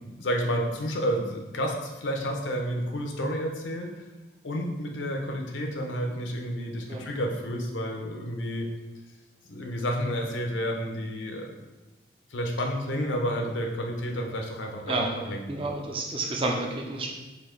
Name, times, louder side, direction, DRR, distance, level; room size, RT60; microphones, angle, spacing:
voice 1, 0.1-4.0 4.4-8.7 9.5-11.5 12.3-15.6, equal, 80° left, 2 dB, 0.7 m, -30 dB
voice 2, 15.5-17.1, right 2 dB, 30° right, 0 dB, 0.4 m, -30 dB
4.3 x 2.7 x 4.5 m, 1.1 s
head